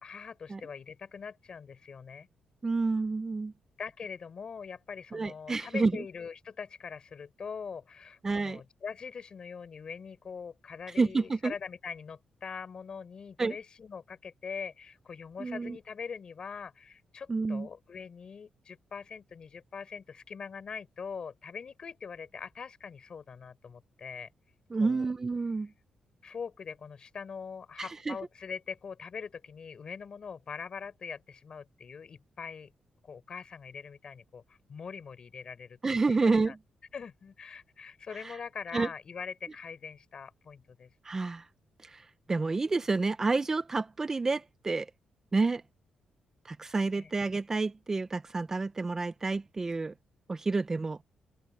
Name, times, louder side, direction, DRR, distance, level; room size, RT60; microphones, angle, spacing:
voice 1, 0.0-2.3 3.8-24.3 24.8-25.1 26.2-32.7 33.0-36.5 36.9-40.9 46.9-47.1, left 6 dB, 40° left, 3.8 m, -42 dB
voice 2, 2.6-3.5 5.1-5.9 8.2-8.6 11.0-11.5 13.4-13.6 15.4-15.8 17.3-17.7 24.7-25.7 27.8-28.2 35.8-36.6 38.2-38.4 38.7-38.9 41.0-41.4 41.8-44.9 45.3-45.6 46.5-49.9 50.3-51.0, right 3 dB, 20° right, 0.5 m, -29 dB
open air
wide cardioid pair, 150°, 2 cm